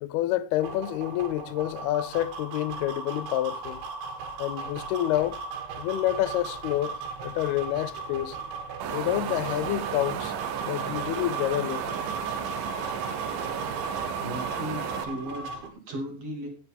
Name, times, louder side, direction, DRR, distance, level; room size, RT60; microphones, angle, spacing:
voice 1, 0.0-3.8 4.4-5.4 5.8-8.4 8.9-10.4 10.6-12.0, left 14 dB, 85° left, 2.7 m, -28 dB
sound 1, 0.6-15.7, right 4 dB, 85° right, 4.2 m, -37 dB
Wind, 8.8-15.0, right 8 dB, 65° right, 2.4 m, -33 dB
voice 2, 14.2-16.5, equal, 45° right, 3.6 m, -36 dB
17.0 x 7.6 x 3.5 m
omnidirectional pair, 4.5 m